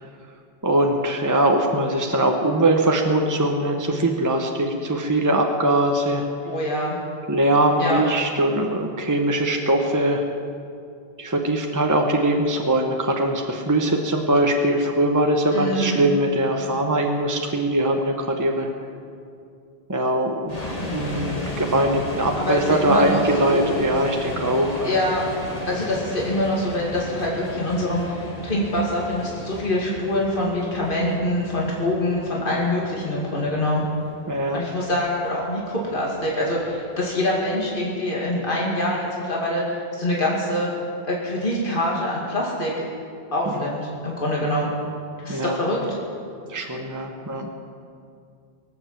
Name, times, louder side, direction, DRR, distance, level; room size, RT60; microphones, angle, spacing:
voice 1, 0.6-6.3 7.3-10.2 11.2-18.7 19.9-25.0 34.3-34.6 43.5-43.7 45.3-45.6 46.5-47.5, right 1 dB, 20° right, 2 dB, 1.0 m, -21 dB
voice 2, 6.4-7.0 7.8-8.0 15.5-16.0 22.4-23.6 24.8-25.2 25.7-33.8 34.5-40.7 41.0-42.8 43.3-44.7 45.2-45.8, left 1 dB, 55° left, -4 dB, 2.6 m, -25 dB
sound 1, 20.5-37.5, left 1 dB, 40° left, 1.8 m, -35 dB
23.5 x 8.0 x 7.4 m, 2.4 s
omnidirectional pair, 1.1 m